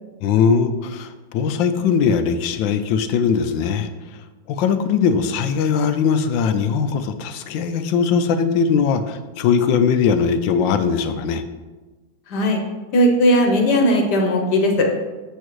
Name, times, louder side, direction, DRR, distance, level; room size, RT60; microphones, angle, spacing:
voice 1, 0.2-3.9 4.5-11.4, left 6 dB, 85° left, 9 dB, 1.4 m, -20 dB
voice 2, 12.9-14.9, equal, 65° left, 2 dB, 1.6 m, -17 dB
8.3 x 7.4 x 3.1 m, 1.2 s
omnidirectional pair, 2.0 m